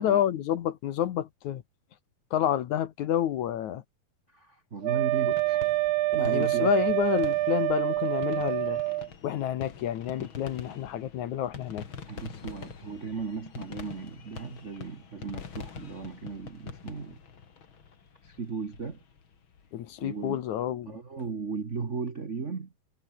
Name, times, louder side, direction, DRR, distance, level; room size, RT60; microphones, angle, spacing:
voice 1, 0.0-1.6 2.3-3.8 6.2-8.8 9.2-11.9 19.7-21.0, left 11 dB, 65° left, 2.4 m, -29 dB
voice 2, 4.3-5.6 6.1-6.7 12.1-17.2 18.2-19.0 20.0-20.4 20.9-22.7, right 5 dB, 60° right, 0.7 m, -36 dB
Wind instrument woodwind instrument, 4.8-9.1, right 18 dB, 80° right, 1.8 m, -26 dB
sound 1, 5.1-20.1, left 6 dB, 40° left, 2.7 m, -45 dB
omnidirectional pair, 4.0 m